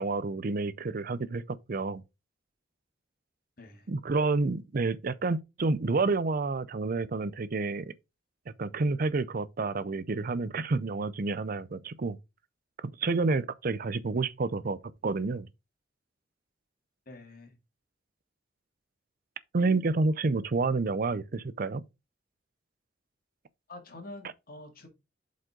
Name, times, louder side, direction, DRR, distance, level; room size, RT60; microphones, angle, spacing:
voice 1, 0.0-2.0 3.9-7.9 8.6-12.2 12.8-15.5 19.5-21.8, right 3 dB, 50° right, 0.5 m, -29 dB
voice 2, 3.6-3.9 17.1-17.6 23.7-24.9, left 2 dB, 50° left, 2.3 m, -46 dB
7.5 x 5.4 x 3.8 m
head